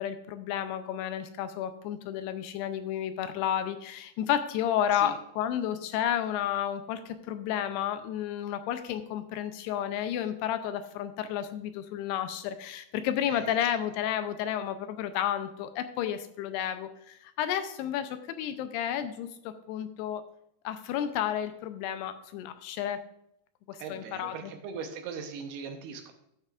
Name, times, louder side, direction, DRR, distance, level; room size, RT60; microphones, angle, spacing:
voice 1, 0.0-20.2 20.6-23.0 23.7-24.5, left 10 dB, 80° left, 10 dB, 2.6 m, -31 dB
voice 2, 23.8-26.1, right 5 dB, 75° right, 5 dB, 2.8 m, -40 dB
13.0 x 8.5 x 2.4 m, 0.76 s
omnidirectional pair, 4.9 m